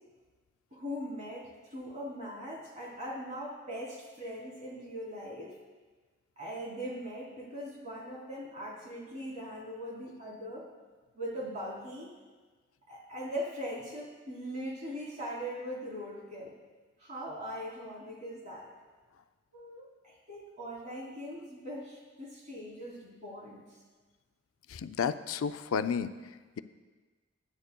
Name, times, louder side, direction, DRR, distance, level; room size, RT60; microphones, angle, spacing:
voice 1, 0.7-5.5 6.4-10.7 11.1-12.1 12.9-16.5 17.0-18.7 19.5-23.6, equal, 35° right, -4 dB, 3.0 m, -40 dB
voice 2, 24.7-26.1, left 6 dB, 85° left, 11 dB, 0.4 m, -31 dB
21.5 x 9.7 x 2.2 m, 1.3 s
head